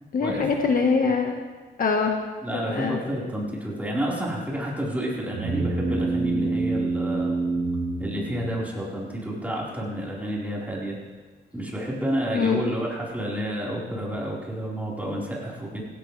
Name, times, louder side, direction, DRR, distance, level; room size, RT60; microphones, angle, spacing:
voice 1, 0.1-1.4 1.8-2.1 2.5-3.0 12.3-12.6, left 5 dB, 50° left, 2 dB, 1.5 m, -23 dB
voice 2, 2.4-7.4 8.0-11.0 11.5-15.8, equal, 10° right, -6 dB, 4.5 m, -30 dB
sound 1, 5.3-9.0, right 3 dB, 65° right, 4.3 m, -27 dB
18.0 x 16.5 x 3.4 m, 1.4 s
cardioid pair, 110°, 19 cm